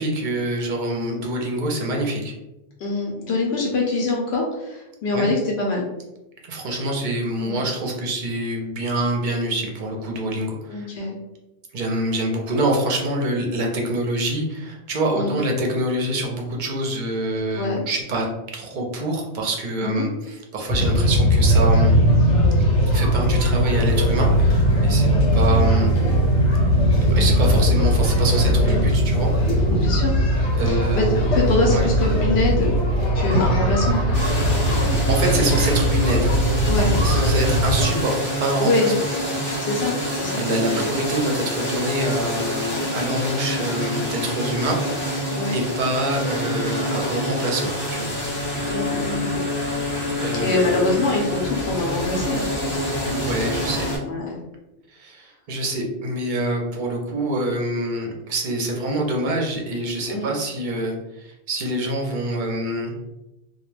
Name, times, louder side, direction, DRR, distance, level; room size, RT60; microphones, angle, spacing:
voice 1, 0.0-2.3 5.1-5.3 6.4-10.9 11.7-18.3 18.5-21.9 22.8-25.9 27.1-29.3 30.6-31.1 31.7-31.9 35.1-36.4 37.0-38.9 40.4-44.8 45.0-48.1 50.2-50.7 53.0-53.9 54.9-62.9, right 1 dB, 55° right, 0 dB, 0.6 m, -26 dB
voice 2, 2.8-5.9 7.5-7.6 10.7-11.2 15.1-15.4 17.5-17.8 19.8-20.1 27.1-27.3 29.8-30.1 30.7-32.7 33.1-34.0 36.7-37.0 38.6-38.9 39.6-40.4 40.7-40.9 45.3-45.5 48.7-49.4 50.4-52.5 54.0-54.4 60.1-60.3, left 2 dB, 70° left, -2 dB, 0.8 m, -24 dB
sound 1, 20.7-37.9, equal, 90° left, 1.1 m, -19 dB
sound 2, 34.1-54.0, left 1 dB, 20° left, 0.7 m, -26 dB
2.2 x 2.1 x 3.1 m, 0.94 s
omnidirectional pair, 1.1 m